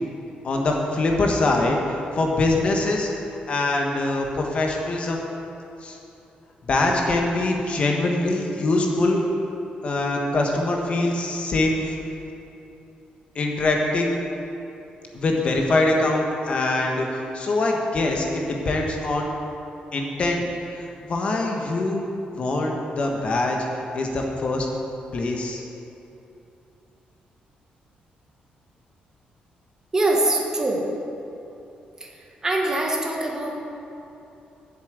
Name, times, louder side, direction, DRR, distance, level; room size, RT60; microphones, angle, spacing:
voice 1, 0.4-3.1 3.5-5.2 5.8-6.0 6.7-9.2 9.8-11.9 13.3-14.1 15.1-19.3 19.9-20.4 20.7-22.1 22.4-23.6 23.9-24.7 25.1-25.6, left 2 dB, 40° left, 1 dB, 1.3 m, -23 dB
voice 2, 29.9-30.8 32.0-32.1 32.4-33.6, right 2 dB, 20° right, 0 dB, 1.4 m, -23 dB
8.4 x 7.3 x 8.0 m, 2.9 s
cardioid pair, 145°, 3 cm